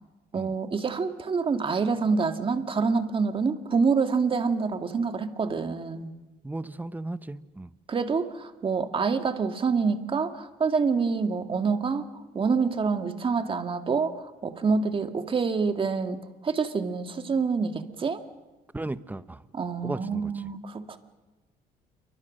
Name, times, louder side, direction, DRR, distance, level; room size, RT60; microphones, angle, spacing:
voice 1, 0.3-6.1 7.9-18.2 19.5-21.0, right 5 dB, 30° right, 7 dB, 2.1 m, -27 dB
voice 2, 6.4-7.7 18.7-19.4 19.8-20.3, right 2 dB, 10° right, 14 dB, 0.9 m, -35 dB
29.0 x 24.0 x 6.5 m, 1.1 s
cardioid pair, 110°, 17 cm